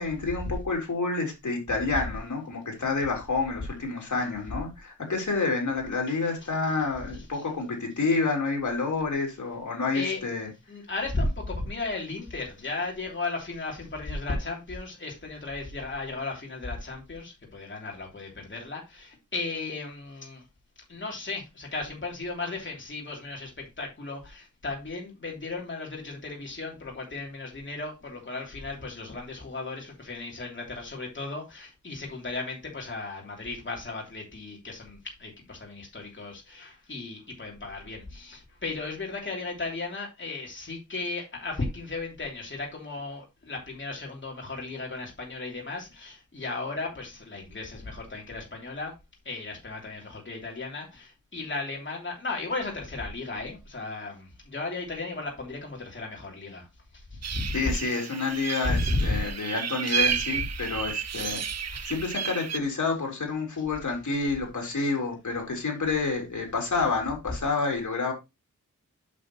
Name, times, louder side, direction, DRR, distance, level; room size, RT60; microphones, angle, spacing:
voice 1, 0.0-10.5 57.5-61.4 61.9-68.1, left 3 dB, 70° left, 3.5 m, -29 dB
voice 2, 6.1-6.5 9.9-10.2 10.7-20.4 20.9-48.9 49.2-56.7 56.9-57.5 58.6-59.3 61.7-61.9, left 3 dB, 40° left, 3.1 m, -35 dB
sound 1, 57.2-62.6, right 8 dB, 55° right, 0.6 m, -32 dB
8.3 x 6.9 x 3.0 m
wide cardioid pair, 100°, 31 cm